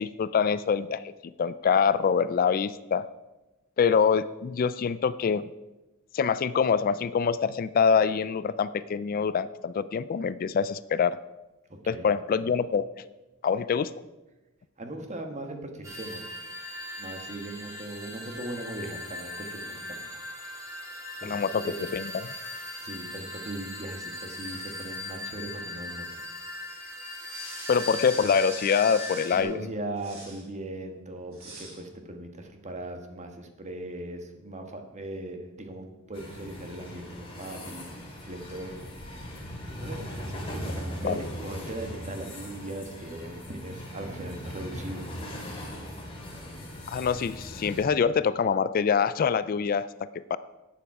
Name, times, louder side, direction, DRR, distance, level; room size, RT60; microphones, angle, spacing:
voice 1, 0.0-3.1 3.8-5.5 6.1-11.2 11.9-12.8 13.4-13.9 21.2-22.2 27.7-29.6 41.0-41.2 46.9-49.9 50.3-50.4, left 6 dB, 45° left, 15 dB, 0.3 m, -25 dB
voice 2, 11.7-12.1 14.8-16.2 17.0-20.0 21.2-21.9 22.8-26.1 29.3-38.0 38.3-38.9 39.8-45.1, right 1 dB, 35° right, 5 dB, 1.4 m, -39 dB
sound 1, 15.8-29.4, left 2 dB, 15° right, 2.7 m, -39 dB
sound 2, 27.2-29.5 30.0-30.5 31.3-31.8, right 2 dB, 75° right, 5.0 m, -43 dB
sound 3, 36.1-47.8, equal, 25° left, 2.7 m, -39 dB
11.5 x 9.2 x 4.8 m, 1.1 s
head